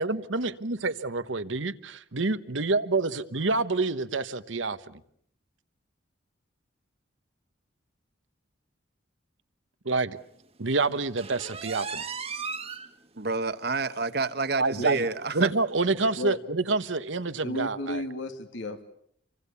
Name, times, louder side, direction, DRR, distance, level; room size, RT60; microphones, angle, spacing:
voice 1, 0.0-1.7 2.1-5.0 9.8-10.2 10.6-12.0 14.6-15.0 15.3-18.0, right 3 dB, 75° right, 1.2 m, -27 dB
sound 1, 11.2-12.9 13.3-13.4 13.8-13.9 14.3-14.4 15.4-15.5, right 5 dB, 30° right, 1.5 m, -36 dB
voice 2, 13.1-15.5, right 3 dB, 55° right, 1.3 m, -29 dB
voice 3, 17.4-18.8, left 1 dB, 75° left, 2.7 m, -34 dB
28.5 x 24.5 x 7.0 m
head